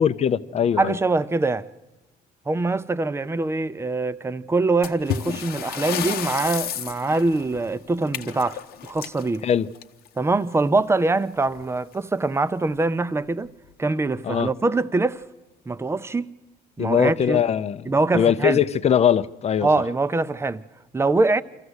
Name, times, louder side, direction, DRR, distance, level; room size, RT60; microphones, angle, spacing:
voice 1, 0.0-1.0 9.4-9.7 14.2-14.5 16.8-19.7, left 8 dB, 40° left, 0.7 m, -21 dB
voice 2, 0.8-1.7 2.5-9.5 10.2-13.5 13.8-15.2 15.7-16.3 16.8-17.4 17.9-18.6 19.6-20.6 20.9-21.4, right 3 dB, 15° right, 0.6 m, -23 dB
sound 1, 4.8-10.2 11.5-11.6 11.9-12.0 12.7-12.8 13.5-13.7, left 10 dB, 65° left, 0.9 m, -32 dB
25.5 x 14.5 x 8.1 m
cardioid pair, 110°, 17 cm